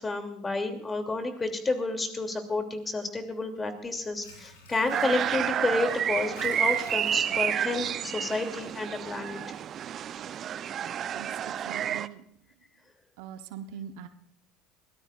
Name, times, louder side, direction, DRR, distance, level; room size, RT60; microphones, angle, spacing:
voice 1, 0.0-9.4, left 3 dB, 20° left, 6 dB, 2.8 m, -30 dB
Water / Sink (filling or washing), 3.8-9.7 10.1-10.2, left 3 dB, 75° left, 4.7 m, -50 dB
sound 1, 4.9-12.1, right 9 dB, 45° right, 0.6 m, -30 dB
voice 2, 11.1-12.2 13.2-14.1, right 9 dB, 65° right, 9 dB, 1.0 m, -42 dB
23.0 x 17.0 x 2.5 m, 0.72 s
figure-of-eight pair, 65°, 0 cm